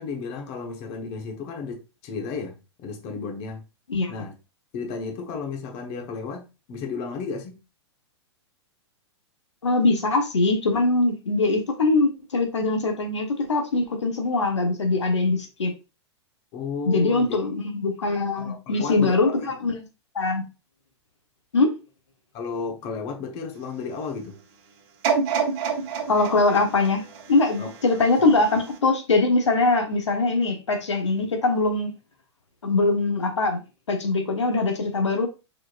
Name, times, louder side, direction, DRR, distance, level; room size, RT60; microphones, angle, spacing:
voice 1, 0.0-3.6 4.1-4.3 4.7-7.6 16.5-17.4 18.3-19.5 22.3-24.4 27.6-27.7, left 5 dB, 40° left, 1.2 m, -33 dB
voice 2, 9.6-15.7 16.8-19.3 19.6-19.7 20.1-20.4 21.5-21.7 26.1-31.9 32.6-33.6 33.9-35.3, left 3 dB, 85° left, 1.1 m, -22 dB
sound 1, 25.0-28.1 28.7-28.8, right 6 dB, 50° right, 1.4 m, -27 dB
4.6 x 4.4 x 2.4 m
hypercardioid pair, 110°, 15 cm